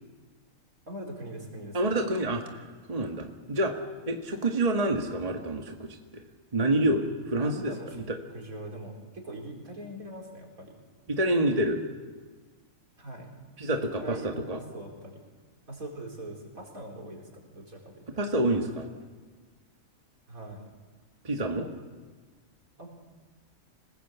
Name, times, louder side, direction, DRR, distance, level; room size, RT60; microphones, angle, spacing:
voice 1, 0.9-1.8 7.4-8.0 8.3-10.7 13.0-13.3 14.0-15.2 15.7-18.0 20.3-20.7 22.8-23.0, right 1 dB, 70° right, 0 dB, 4.9 m, -42 dB
voice 2, 1.7-3.8 4.1-6.2 6.5-8.2 11.1-11.8 13.6-14.6 18.2-18.9 21.2-21.7, right 1 dB, 25° right, 3 dB, 1.6 m, -28 dB
26.5 x 20.0 x 8.2 m, 1.4 s
omnidirectional pair, 1.5 m